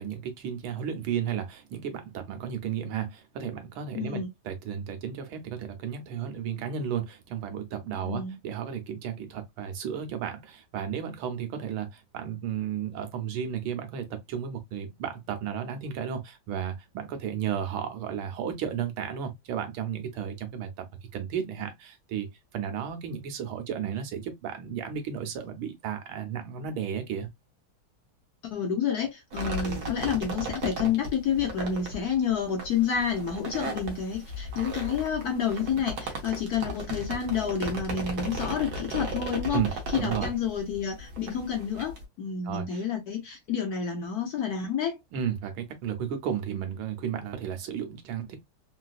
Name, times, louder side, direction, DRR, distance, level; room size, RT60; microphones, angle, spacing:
voice 1, 0.0-20.9 21.1-22.3 22.5-27.3 39.5-39.7 40.0-40.3 42.5-42.8 45.1-48.4, right 8 dB, 80° right, 1.6 m, -33 dB
voice 2, 3.9-4.3 7.9-8.4 28.4-39.6 39.9-45.0, left 7 dB, 65° left, 1.0 m, -29 dB
sound 1, 29.3-42.0, right 1 dB, 60° right, 1.3 m, -36 dB
3.8 x 2.5 x 2.3 m
omnidirectional pair, 2.2 m